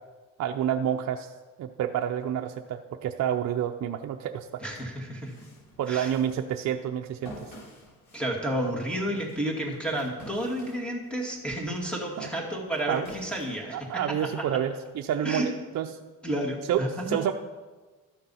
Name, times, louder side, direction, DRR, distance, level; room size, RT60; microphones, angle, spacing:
voice 1, 0.4-1.3 1.6-4.6 5.8-7.5 12.2-12.3 12.9-13.1 13.7-15.9 16.7-17.3, right 9 dB, 55° right, 4 dB, 0.6 m, -29 dB
voice 2, 4.6-5.3 5.9-6.1 8.1-14.2 15.2-15.5 16.2-17.2, right 1 dB, 5° left, 0 dB, 2.3 m, -31 dB
sound 1, 4.9-11.3 11.7-14.4, equal, 80° left, 4.3 m, -49 dB
12.5 x 6.7 x 5.6 m, 1.3 s
cardioid pair, 125°, 33 cm